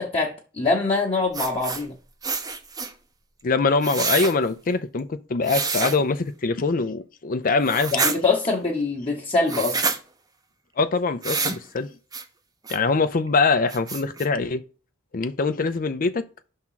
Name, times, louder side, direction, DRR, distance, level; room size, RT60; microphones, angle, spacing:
voice 1, 0.0-2.0 7.9-9.8, left 3 dB, 30° left, 1.0 m, -24 dB
sound 1, 1.3-1.9 2.2-2.9 3.8-4.3 5.5-6.0 7.6-8.2 9.5-10.0 11.2-11.6 12.1-12.2 12.7-12.8 13.3-13.4 13.7-14.3, right 4 dB, 20° right, 0.7 m, -27 dB
voice 2, 3.4-7.9 10.8-11.9 12.7-14.6 15.1-16.2, left 4 dB, 45° left, 0.5 m, -23 dB
5.9 x 3.7 x 5.7 m
head